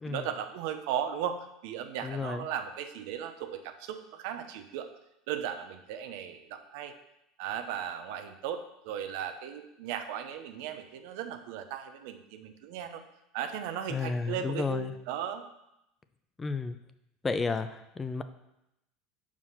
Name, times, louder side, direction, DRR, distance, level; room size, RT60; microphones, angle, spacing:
voice 1, 0.1-4.9 5.3-6.9 7.4-13.0 13.3-15.4, right 9 dB, 70° right, 8 dB, 0.7 m, -36 dB
voice 2, 2.0-2.4 13.9-14.9 16.4-16.8 17.2-18.2, left 4 dB, 20° left, 10 dB, 0.5 m, -32 dB
5.7 x 4.9 x 5.6 m, 0.86 s
supercardioid pair, 110°, 0 cm